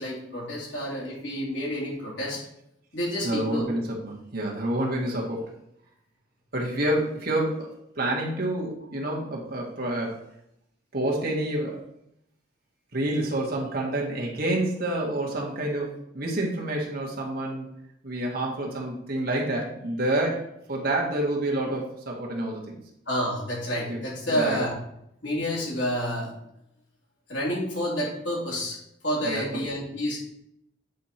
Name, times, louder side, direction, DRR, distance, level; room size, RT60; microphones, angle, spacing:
voice 1, 0.0-2.5 2.9-3.7 23.1-24.7 25.2-26.3 27.3-30.2, equal, 70° left, -5 dB, 3.1 m, -29 dB
voice 2, 3.2-5.5 6.5-7.7 8.0-10.1 10.9-11.8 12.9-17.7 18.0-20.4 20.7-22.8 23.9-24.0 24.3-24.6 29.2-29.4, right 1 dB, 55° right, -2 dB, 1.8 m, -28 dB
8.4 x 4.6 x 4.3 m, 0.77 s
head